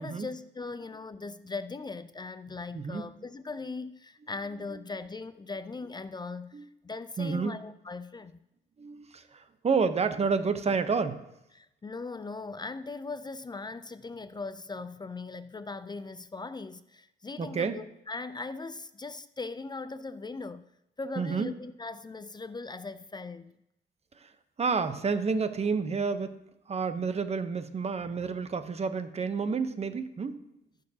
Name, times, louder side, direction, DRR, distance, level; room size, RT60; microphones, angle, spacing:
voice 1, 0.0-8.3 11.5-20.7 21.0-23.5, left 3 dB, 20° left, 0.4 m, -39 dB
voice 2, 2.7-3.1 6.5-6.7 7.2-7.6 8.8-11.2 17.4-17.8 21.2-21.5 24.2-24.3 24.6-26.3 26.7-30.4, right 5 dB, 30° right, 0.9 m, -29 dB
15.5 x 6.5 x 2.8 m
cardioid pair, 90°, 20 cm